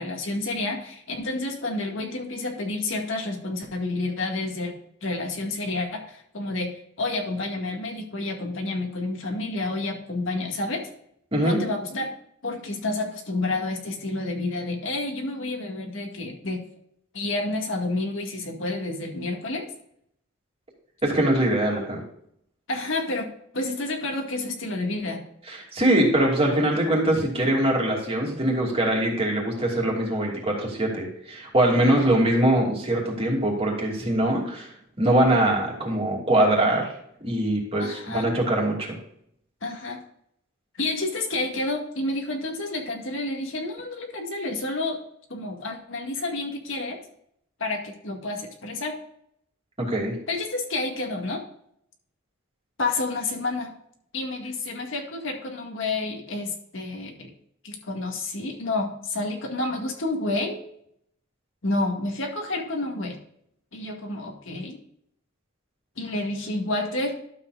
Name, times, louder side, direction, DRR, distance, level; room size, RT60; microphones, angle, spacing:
voice 1, 0.0-4.7 5.0-6.7 7.0-10.9 11.4-12.1 12.4-16.6 17.1-19.7 22.7-25.2 37.8-38.3 39.6-40.0 40.8-45.0 45.3-47.0 47.6-49.0 50.3-51.4 52.8-53.7 54.1-57.3 57.6-60.6 61.6-63.2 63.7-64.8 66.0-67.2, left 2 dB, 65° left, 2 dB, 1.9 m, -29 dB
voice 2, 21.0-22.0 25.5-34.7 35.0-36.9 37.2-39.0 49.8-50.2, right 1 dB, 30° right, -1 dB, 2.7 m, -22 dB
12.5 x 7.5 x 2.5 m, 0.70 s
head